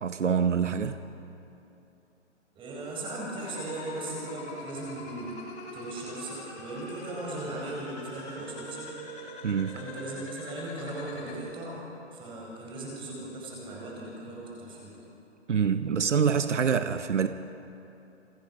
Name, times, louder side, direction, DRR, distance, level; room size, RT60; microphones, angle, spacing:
voice 1, 0.0-1.0 9.4-9.8 15.5-17.3, right 7 dB, 85° right, 1.0 m, -25 dB
voice 2, 2.5-5.4 5.7-9.0 9.7-11.8 12.1-14.9, right 2 dB, 15° right, 5.0 m, -38 dB
sound 1, 3.4-11.4, left 1 dB, 20° left, 3.1 m, -43 dB
28.0 x 19.0 x 5.4 m
hypercardioid pair, 145°, 36 cm